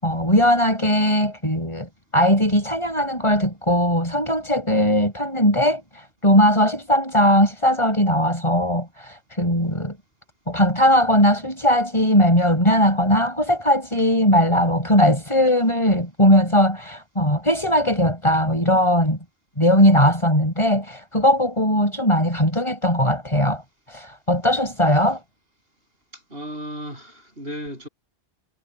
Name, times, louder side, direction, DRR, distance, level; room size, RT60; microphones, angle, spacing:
voice 1, 0.0-10.0 10.5-19.2 19.6-25.2, equal, 30° left, 8.0 m, -19 dB
voice 2, 26.1-27.9, equal, 70° right, 8.1 m, -35 dB
omnidirectional pair, 1.0 m